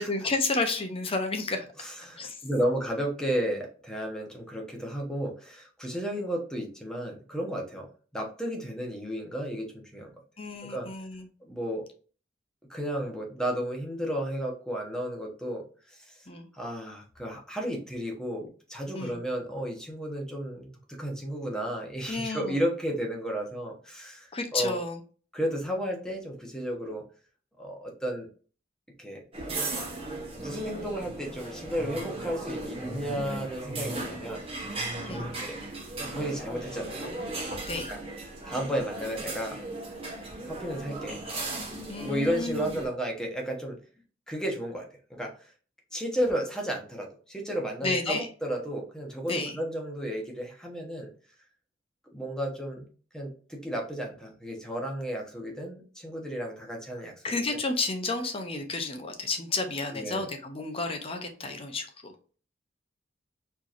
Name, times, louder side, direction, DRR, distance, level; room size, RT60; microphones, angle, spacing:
voice 1, 0.0-1.6 2.2-2.4 10.4-11.3 16.3-16.5 18.9-19.2 22.1-22.5 24.3-25.0 35.1-35.3 37.7-37.9 41.9-42.8 47.8-48.3 49.3-49.6 57.2-62.1, left 3 dB, 30° left, 5 dB, 0.7 m, -31 dB
voice 2, 1.8-7.9 8.1-10.1 10.6-10.9 11.5-11.9 12.7-16.2 16.5-24.8 25.3-27.0 27.6-28.3 29.0-29.2 30.3-34.5 35.1-35.6 36.1-37.1 37.9-38.0 38.4-39.6 40.5-41.2 42.0-43.8 44.3-45.5 45.9-51.1 52.1-52.9 53.1-57.1 59.9-60.3, equal, 5° left, 0 dB, 1.0 m, -33 dB
sound 1, 29.3-42.9, right 2 dB, 30° right, 1.2 m, -37 dB
4.5 x 2.9 x 2.6 m, 0.39 s
head